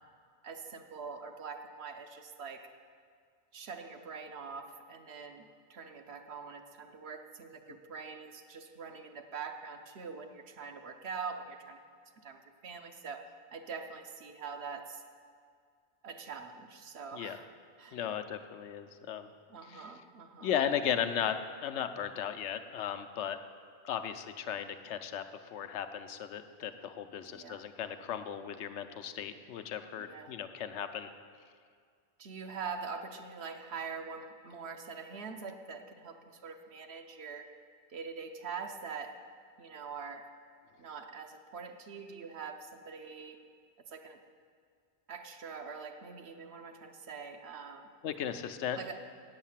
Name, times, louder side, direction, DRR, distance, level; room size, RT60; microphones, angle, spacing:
voice 1, 0.4-2.6 3.5-11.8 12.2-13.2 13.5-15.0 16.0-17.5 17.8-18.0 19.5-20.5 27.3-27.6 30.0-30.4 32.2-37.5 37.9-39.1 39.6-40.2 40.8-43.4 43.9-44.2 45.1-47.9 48.8-49.0, right 5 dB, 65° right, 6 dB, 1.0 m, -44 dB
voice 2, 17.9-19.3 19.7-19.9 20.4-21.4 21.6-23.4 23.8-25.2 25.5-31.1 48.0-48.8, left 9 dB, 80° left, 9 dB, 0.9 m, -36 dB
8.3 x 7.9 x 7.3 m, 2.1 s
omnidirectional pair, 1.2 m